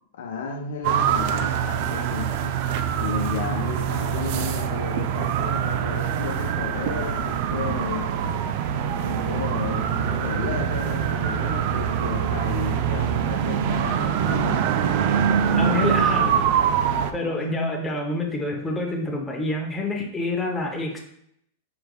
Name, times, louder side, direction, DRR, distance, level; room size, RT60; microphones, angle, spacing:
voice 1, 0.1-2.6 3.0-8.1 9.0-14.6 15.3-16.4 16.9-17.8, left 5 dB, 75° left, 3 dB, 0.6 m, -33 dB
sound 1, 0.8-17.1, right 8 dB, 55° right, 0.3 m, -24 dB
voice 2, 15.6-16.3 17.1-21.0, left 2 dB, 10° left, 0 dB, 0.8 m, -27 dB
4.7 x 3.3 x 2.3 m, 0.70 s
hypercardioid pair, 125°, 0 cm